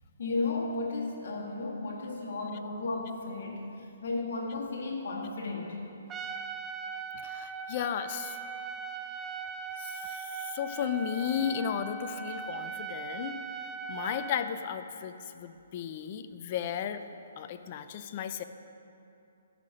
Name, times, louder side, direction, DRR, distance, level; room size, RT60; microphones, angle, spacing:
voice 1, 0.2-3.7 4.0-5.8, left 3 dB, 65° left, 0 dB, 1.8 m, -34 dB
Trumpet, 6.1-14.5, right 5 dB, 15° right, 0.5 m, -39 dB
voice 2, 7.2-8.4 9.8-13.4 13.9-17.0 17.4-18.4, left 8 dB, 40° left, 10 dB, 0.6 m, -34 dB
14.0 x 5.9 x 5.2 m, 2.6 s
hypercardioid pair, 140°, 0 cm